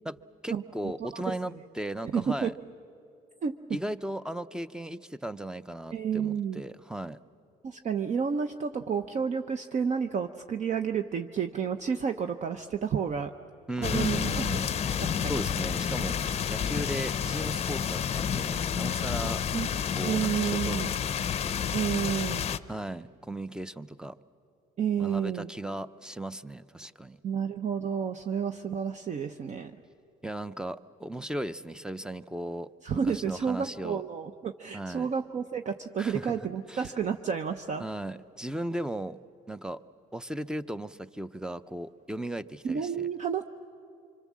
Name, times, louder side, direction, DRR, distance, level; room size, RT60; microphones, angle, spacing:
voice 1, 0.4-2.5 3.7-7.2 13.7-16.2 16.5-19.4 19.9-20.9 22.7-24.1 25.0-27.2 30.2-32.7 33.0-34.0 34.7-35.1 36.0-36.4 36.7-36.9 37.8-39.2 39.5-39.8 40.1-43.1, right 1 dB, 5° right, 14 dB, 0.6 m, -36 dB
voice 2, 1.0-1.4 2.1-2.5 3.4-3.6 5.9-6.6 7.6-13.3 13.8-14.2 14.5-15.4 19.5-19.7 20.0-20.9 21.7-22.5 24.8-25.5 27.2-29.7 32.8-37.8 42.6-43.4, right 7 dB, 45° right, 7 dB, 0.8 m, -30 dB
sound 1, 13.8-22.6, left 8 dB, 40° left, 0.6 m, -30 dB
25.5 x 25.5 x 7.4 m, 2.6 s
cardioid pair, 110°, 17 cm